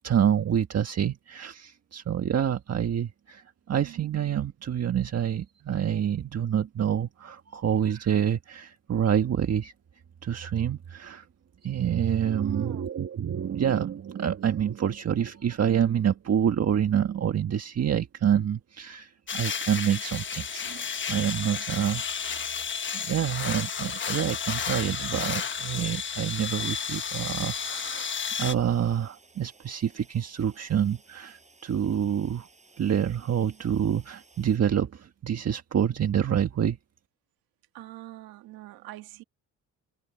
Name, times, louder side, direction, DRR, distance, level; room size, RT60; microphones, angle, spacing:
voice 1, 0.0-9.7 10.2-11.3 11.6-22.5 22.9-28.1 28.4-32.5 32.8-36.8, right 9 dB, 45° right, 1.6 m, -27 dB
voice 2, 12.4-12.9 37.7-39.2, right 16 dB, 90° right, 1.6 m, -43 dB
sound 1, 19.3-28.5, left 6 dB, 35° left, 1.2 m, -32 dB
Toilet flush, 27.5-34.6, right 3 dB, 20° right, 7.8 m, -58 dB
cardioid pair, 95°, 35 cm